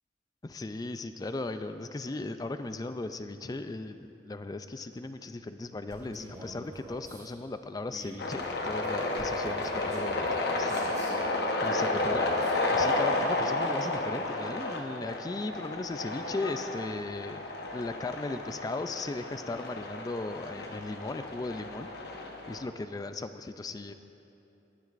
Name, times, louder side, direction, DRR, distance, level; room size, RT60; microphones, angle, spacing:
voice 1, 0.4-10.9 11.6-17.4 17.7-21.9 22.5-23.9, left 2 dB, 20° left, 10 dB, 0.3 m, -37 dB
Male speech man speaking, 5.9-7.3 7.9-11.4 11.9-12.6, equal, 20° right, 2.8 m, -48 dB
sound 1, 8.2-22.6, left 2 dB, 60° left, 1.0 m, -32 dB
21.0 x 9.3 x 2.5 m, 2.9 s
head